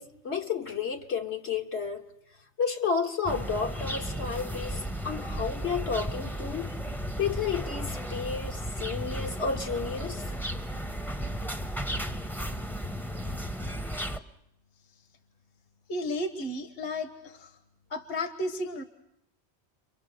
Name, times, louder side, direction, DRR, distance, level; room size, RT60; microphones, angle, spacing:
voice 1, 0.0-2.1 2.6-6.8 7.2-10.3, left 5 dB, 75° left, 1.7 m, -31 dB
sound 1, 3.2-14.2, equal, ahead, 0.7 m, -34 dB
voice 2, 15.9-17.5 17.9-18.8, left 1 dB, 60° left, 1.4 m, -33 dB
30.0 x 23.5 x 6.5 m
omnidirectional pair, 1.1 m